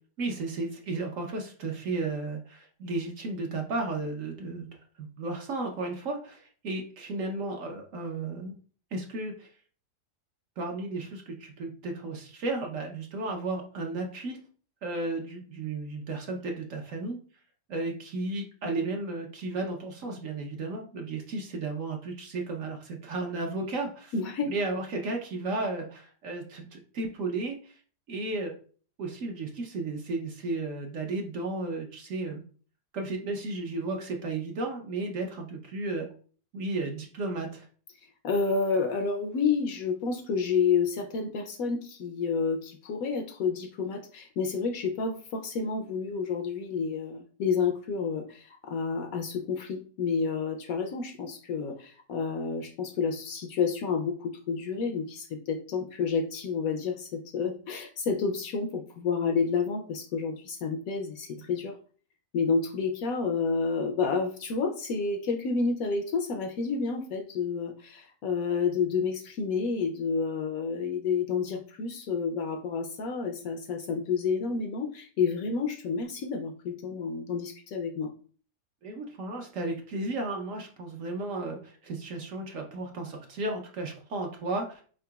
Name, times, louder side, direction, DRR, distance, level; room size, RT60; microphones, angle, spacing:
voice 1, 0.2-4.7 5.0-8.5 8.9-9.5 10.6-14.4 14.8-17.2 17.7-24.1 24.4-27.8 28.1-28.5 29.0-32.4 32.9-36.1 36.5-37.7 78.8-84.8, right 2 dB, 65° right, 2 dB, 0.9 m, -34 dB
voice 2, 24.1-24.5 38.2-61.8 62.3-78.1, left 5 dB, 70° left, 5 dB, 0.9 m, -30 dB
4.6 x 3.8 x 2.3 m, 0.43 s
omnidirectional pair, 1.7 m